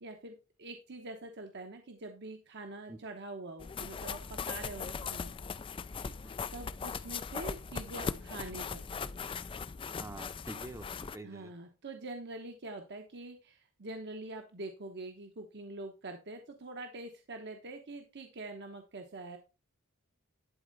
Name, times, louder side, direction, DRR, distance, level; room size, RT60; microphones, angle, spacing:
voice 1, 0.0-5.3 6.5-9.1 11.2-19.4, right 2 dB, 55° right, 4 dB, 1.0 m, -45 dB
sound 1, 3.6-11.2, left 5 dB, 25° left, 0.3 m, -39 dB
voice 2, 10.0-11.5, right 1 dB, 15° right, 8 dB, 0.7 m, -46 dB
11.0 x 4.2 x 4.0 m, 0.29 s
head